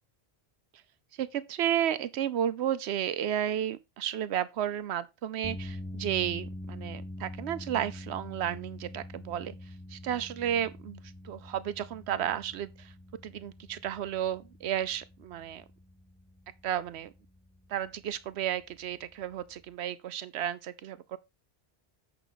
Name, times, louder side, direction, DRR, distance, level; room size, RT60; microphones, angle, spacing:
voice 1, 1.2-9.5 9.9-12.9 13.2-15.6 16.6-17.1 17.7-21.2, right 10 dB, 90° right, 0.9 m, -32 dB
sound 1, 5.4-19.7, left 1 dB, 10° left, 0.6 m, -45 dB
9.1 x 5.9 x 3.9 m
omnidirectional pair, 1.1 m